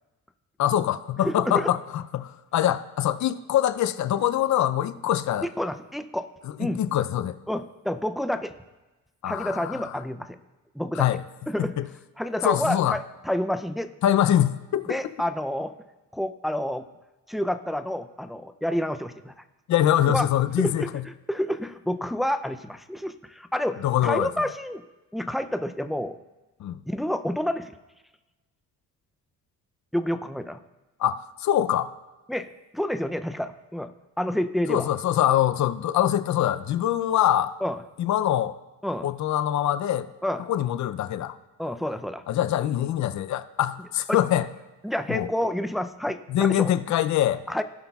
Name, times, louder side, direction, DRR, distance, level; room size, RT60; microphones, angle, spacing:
voice 1, 0.6-5.5 6.4-7.4 9.2-9.8 10.9-11.2 11.8-11.9 12.4-13.0 14.0-15.0 19.7-21.0 23.8-24.3 26.6-26.8 31.0-31.9 34.7-37.5 38.0-38.6 39.0-40.1 40.5-41.4 42.3-44.5 45.1-45.3 46.3-47.4, left 11 dB, 55° left, 13 dB, 0.5 m, -24 dB
voice 2, 1.2-1.7 5.4-6.3 6.6-6.8 7.5-8.6 9.2-10.4 10.7-11.1 11.5-11.7 12.2-13.9 14.9-15.7 16.1-16.9 17.3-19.3 20.1-20.3 20.6-24.8 25.1-26.2 26.9-27.8 29.9-30.6 32.3-33.9 34.2-34.9 37.6-37.8 38.8-39.1 40.2-40.4 41.6-42.2 44.1-44.2 44.8-46.7 47.5-47.6, equal, ahead, 9 dB, 0.4 m, -29 dB
16.5 x 5.6 x 2.4 m, 1.1 s
cardioid pair, 85°, 34 cm